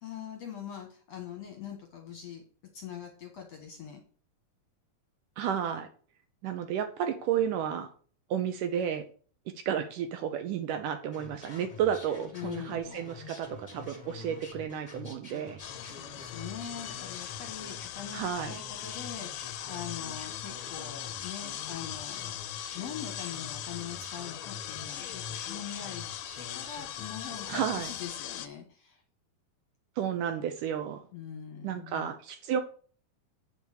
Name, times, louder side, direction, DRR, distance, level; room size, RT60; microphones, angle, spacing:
voice 1, 0.0-2.4 2.7-4.0 12.3-13.0 15.9-26.1 26.4-29.0 31.1-32.1, left 8 dB, 60° left, 4 dB, 1.8 m, -42 dB
voice 2, 5.4-5.9 6.4-7.9 8.3-9.0 9.7-15.6 18.1-18.5 27.5-27.9 30.0-31.0 31.6-32.6, right 9 dB, 70° right, 8 dB, 2.1 m, -32 dB
sound 1, 11.1-27.8, left 3 dB, 30° left, 0.6 m, -46 dB
sound 2, 15.6-28.5, left 13 dB, 80° left, 2.0 m, -40 dB
8.7 x 6.2 x 6.6 m, 0.42 s
omnidirectional pair, 4.3 m